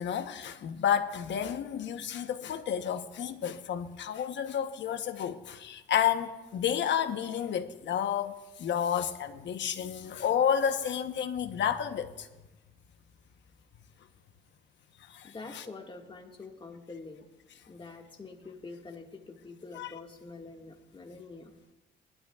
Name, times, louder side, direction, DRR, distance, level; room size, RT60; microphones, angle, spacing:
voice 1, 0.0-12.3 15.1-15.6 19.7-19.9, left 9 dB, 65° left, 1.0 m, -31 dB
voice 2, 15.2-17.2 17.7-21.6, left 3 dB, 25° left, 1.9 m, -46 dB
20.5 x 12.5 x 2.4 m
cardioid pair, 90°, 20 cm